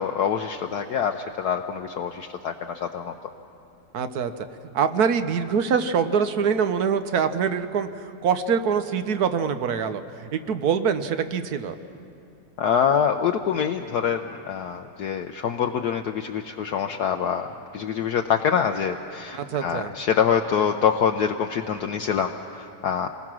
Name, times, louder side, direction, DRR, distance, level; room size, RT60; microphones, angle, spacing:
voice 1, 0.0-3.2 12.6-17.5 17.7-23.1, left 7 dB, 65° left, 5 dB, 1.1 m, -25 dB
voice 2, 3.9-4.3 4.7-11.7 19.3-19.9, right 6 dB, 60° right, 10 dB, 1.3 m, -24 dB
27.5 x 20.0 x 6.1 m, 2.6 s
omnidirectional pair, 2.0 m